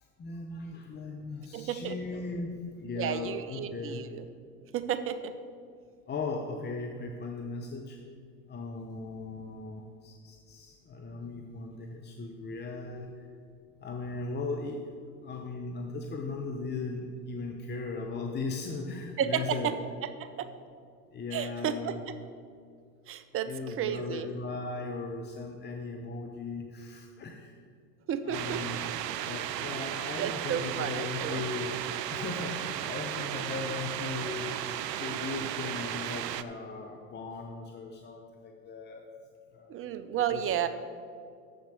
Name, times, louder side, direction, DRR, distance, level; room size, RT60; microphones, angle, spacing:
voice 1, 0.2-4.0 6.1-8.0 8.5-13.3 13.8-14.9 15.2-19.7 21.1-22.0 23.5-27.6 28.2-28.9 29.2-31.7 32.1-34.5 35.0-39.1 39.5-39.7 40.3-40.6, left 3 dB, 20° left, 2 dB, 0.8 m, -38 dB
voice 2, 1.5-2.0 3.0-4.2 4.7-5.3 19.2-19.7 20.2-20.5 21.3-22.2 23.1-23.5 23.8-24.3 28.1-28.6 29.7-29.9 30.2-31.4 39.7-40.7, right 9 dB, 30° right, 12 dB, 0.5 m, -32 dB
sound 1, 28.3-36.4, right 11 dB, 85° right, 0.6 m, -35 dB
7.3 x 7.1 x 6.8 m, 2.3 s
hypercardioid pair, 85°, 48 cm